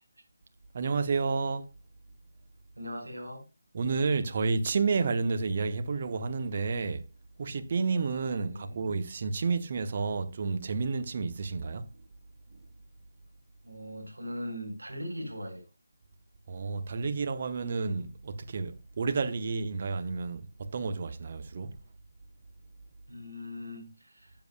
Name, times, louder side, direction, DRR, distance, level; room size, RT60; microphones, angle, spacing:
voice 1, 0.7-1.7 3.7-7.0 7.4-11.9 16.5-21.8, right 4 dB, 35° right, 0.8 m, -30 dB
voice 2, 2.8-3.4 8.4-8.8 13.6-15.7 23.1-24.3, equal, 70° right, 4.1 m, -40 dB
13.0 x 7.0 x 2.2 m
figure-of-eight pair, 155°, 0 cm